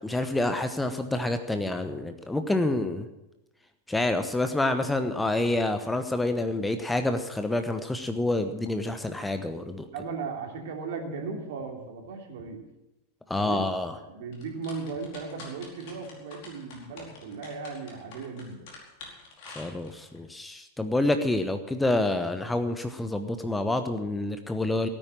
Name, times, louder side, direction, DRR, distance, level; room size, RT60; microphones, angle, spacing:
voice 1, 0.0-3.1 3.9-9.9 13.3-14.0 19.5-24.9, left 2 dB, 5° left, 8 dB, 1.0 m, -28 dB
voice 2, 9.9-12.6 13.3-13.6 14.1-18.7, right 4 dB, 55° right, 2 dB, 3.2 m, -37 dB
sound 1, 14.3-20.2, left 4 dB, 50° left, 4.7 m, -47 dB
17.0 x 9.8 x 7.4 m, 0.96 s
figure-of-eight pair, 90°, 0 cm